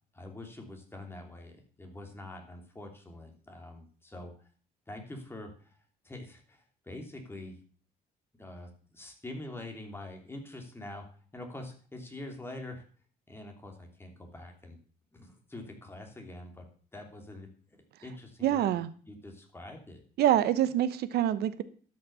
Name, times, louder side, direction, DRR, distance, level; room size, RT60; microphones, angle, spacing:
voice 1, 0.1-4.3 4.9-5.8 6.0-7.6 8.4-12.8 13.3-14.8 15.1-16.7 16.9-18.8 19.1-20.0, left 1 dB, 15° left, 3 dB, 3.1 m, -45 dB
voice 2, 18.4-18.9 20.2-21.6, right 11 dB, 70° right, 15 dB, 1.0 m, -26 dB
12.5 x 6.6 x 7.0 m, 0.43 s
cardioid pair, 110°, 17 cm